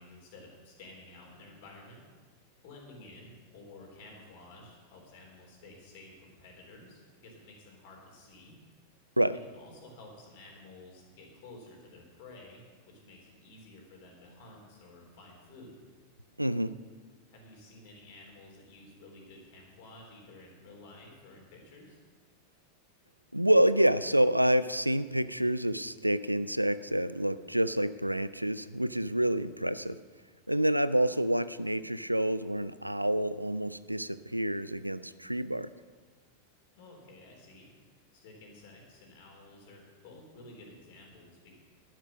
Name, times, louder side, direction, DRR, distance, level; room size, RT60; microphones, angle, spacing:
voice 1, 0.0-2.1 2.6-8.6 9.4-15.8 17.3-22.0 30.5-30.7 36.7-41.6, left 2 dB, 50° left, 0 dB, 3.7 m, -52 dB
voice 2, 16.4-16.8 23.3-30.0 30.5-35.7, right 1 dB, 90° right, 16 dB, 0.4 m, -28 dB
11.5 x 10.5 x 6.2 m, 1.4 s
figure-of-eight pair, 90°, 0 cm